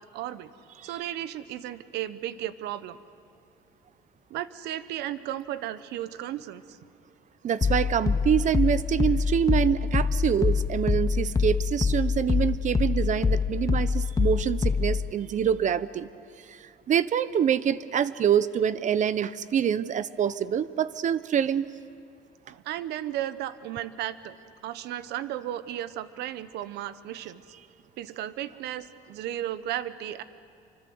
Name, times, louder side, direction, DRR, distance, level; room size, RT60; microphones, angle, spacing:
voice 1, 0.1-0.5 0.8-3.0 4.3-6.8 22.4-24.4 24.6-27.4 28.0-30.2, right 12 dB, 80° right, 14 dB, 1.0 m, -34 dB
voice 2, 7.4-16.1 16.5-21.7, right 8 dB, 45° right, 16 dB, 0.8 m, -26 dB
sound 1, 7.6-15.1, left 5 dB, 20° left, 0.6 m, -25 dB
27.5 x 25.0 x 7.9 m, 2.3 s
cardioid pair, 110°, 17 cm